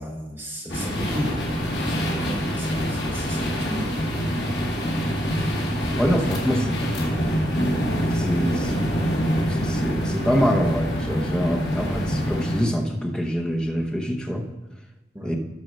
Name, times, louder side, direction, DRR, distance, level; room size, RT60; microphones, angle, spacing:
voice 1, 0.0-1.5 1.8-3.9 6.6-6.8 15.1-15.3, equal, 10° right, -2 dB, 1.4 m, -34 dB
sound 1, 0.7-12.6, equal, 75° left, 2.4 m, -25 dB
voice 2, 6.0-6.7 8.1-8.9 9.5-14.5 15.2-15.4, equal, 5° left, 1 dB, 0.8 m, -25 dB
13.0 x 4.6 x 6.4 m, 1.1 s
head